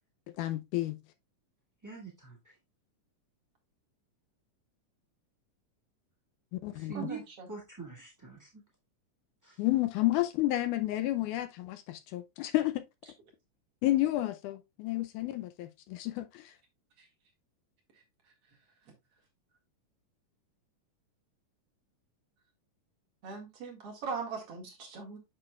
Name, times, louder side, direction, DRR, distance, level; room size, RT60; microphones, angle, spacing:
voice 1, 0.4-1.0 6.6-6.9 9.6-12.8 13.8-16.5, left 16 dB, 80° left, 2.0 m, -31 dB
voice 2, 1.8-2.5 6.7-7.2 7.5-8.5 9.4-9.6, right 4 dB, 30° right, 0.3 m, -43 dB
voice 3, 6.9-7.5 17.0-17.1 23.2-25.2, right 5 dB, 50° right, 2.5 m, -40 dB
7.6 x 6.5 x 2.3 m
omnidirectional pair, 3.7 m